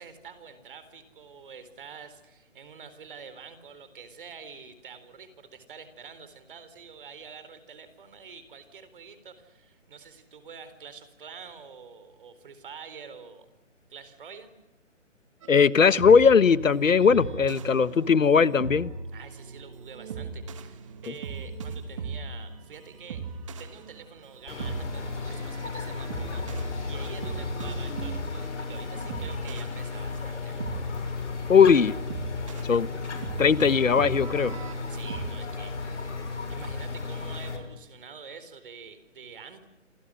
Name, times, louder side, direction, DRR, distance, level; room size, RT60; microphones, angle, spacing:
voice 1, 0.0-13.5 13.9-14.6 19.1-23.2 23.6-30.8 34.9-39.6, right 6 dB, 45° right, 4.2 m, -47 dB
sound 1, 15.4-35.3, right 4 dB, 25° right, 1.7 m, -39 dB
voice 2, 15.5-18.9 31.5-31.9 32.6-32.9 33.1-34.6, left 6 dB, 85° left, 1.3 m, -19 dB
sound 2, 24.5-37.6, left 4 dB, 65° left, 7.1 m, -34 dB
27.5 x 27.5 x 6.4 m
hypercardioid pair, 165°, 38 cm